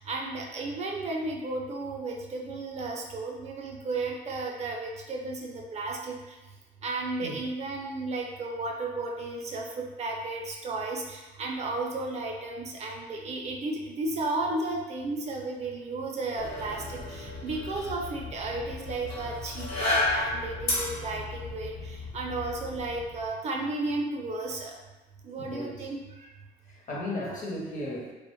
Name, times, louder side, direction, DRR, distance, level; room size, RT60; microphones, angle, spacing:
voice 1, 0.1-6.1 6.8-24.7 25.2-26.0, right 2 dB, 40° right, 0 dB, 0.4 m, -33 dB
sound 1, 16.3-23.2, left 2 dB, 70° left, 1.0 m, -33 dB
voice 2, 25.4-25.9 26.7-28.1, left 1 dB, 50° left, -2 dB, 0.6 m, -35 dB
2.5 x 2.1 x 2.9 m, 1.1 s
cardioid pair, 110°, 17 cm